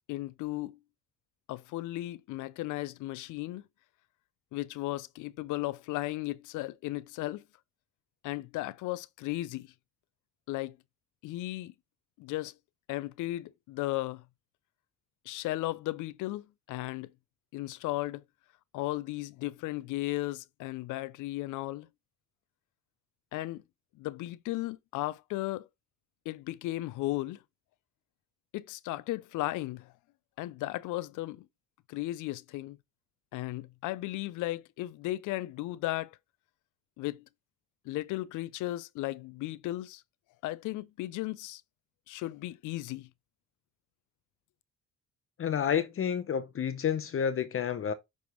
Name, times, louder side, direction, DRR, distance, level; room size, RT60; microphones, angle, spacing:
voice 1, 0.1-0.8 1.5-3.6 4.5-7.4 8.2-9.7 10.5-10.8 11.2-11.7 12.2-12.5 12.9-14.2 15.3-17.1 17.5-18.2 18.7-21.9 23.3-23.6 24.0-25.7 26.3-27.4 28.5-29.9 30.4-31.5 31.9-32.8 33.3-36.2 37.0-37.3 37.9-40.0 40.4-41.6 42.1-43.1, left 17 dB, 90° left, 0.5 m, -35 dB
voice 2, 45.4-47.9, left 8 dB, 45° left, 0.7 m, -30 dB
9.3 x 3.5 x 3.0 m
cardioid pair, 90°, 30 cm